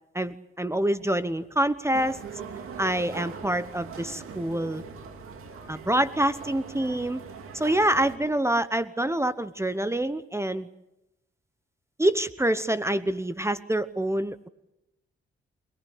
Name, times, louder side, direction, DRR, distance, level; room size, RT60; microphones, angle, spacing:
voice 1, 0.1-2.2 2.8-4.8 5.7-7.2 7.5-10.7 12.0-14.5, right 1 dB, 15° right, 14 dB, 1.0 m, -26 dB
sound 1, 1.9-8.2, right 6 dB, 85° right, 2.5 m, -41 dB
24.5 x 19.0 x 8.5 m, 0.90 s
cardioid pair, 60°, 21 cm